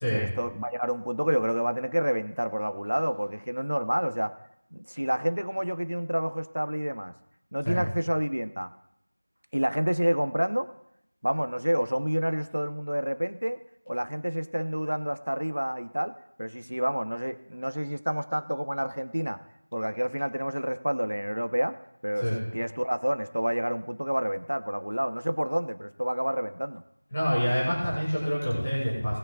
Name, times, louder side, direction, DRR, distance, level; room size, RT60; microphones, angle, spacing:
voice 1, 0.1-4.3 4.7-7.1 7.5-8.7 9.5-10.7 11.2-13.6 13.9-16.1 16.4-19.4 19.7-21.7 22.0-22.3 22.5-26.8, equal, 70° right, 9 dB, 1.1 m, -28 dB
voice 2, 27.1-29.2, equal, 10° left, -9 dB, 2.2 m, -27 dB
19.5 x 6.7 x 2.5 m, 0.79 s
figure-of-eight pair, 180°, 0 cm